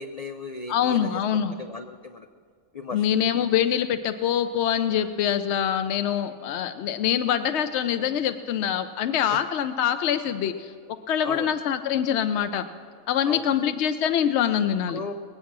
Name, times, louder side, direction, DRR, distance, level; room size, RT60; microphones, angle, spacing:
voice 1, 0.0-1.2 1.5-2.3 2.7-3.1 11.2-11.5 13.3-13.6 14.9-15.1, left 3 dB, 90° left, 7 dB, 0.3 m, -36 dB
voice 2, 0.7-1.5 2.9-12.6 13.1-15.0, left 9 dB, 65° left, 9 dB, 0.8 m, -24 dB
20.5 x 8.4 x 6.0 m, 2.1 s
omnidirectional pair, 1.4 m